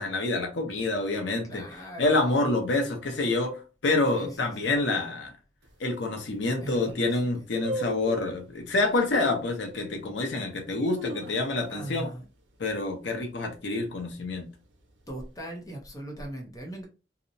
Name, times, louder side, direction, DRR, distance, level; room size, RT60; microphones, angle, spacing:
voice 1, 0.0-1.6 2.0-5.3 5.8-12.1 12.6-14.5, left 2 dB, 85° left, 0.7 m, -27 dB
voice 2, 1.4-2.2 4.1-4.7 6.6-7.4 11.7-12.2 15.1-16.9, right 1 dB, 20° left, 0.6 m, -39 dB
sound 1, 5.6-5.7 6.3-6.4 6.6-7.0 7.6-8.4 9.1-9.5 10.1-10.2 10.7-11.8 12.1-12.2 12.5-12.9 13.3-13.7 14.3-15.1 15.3-15.4, equal, 85° right, 0.6 m, -37 dB
2.8 x 2.1 x 2.6 m
head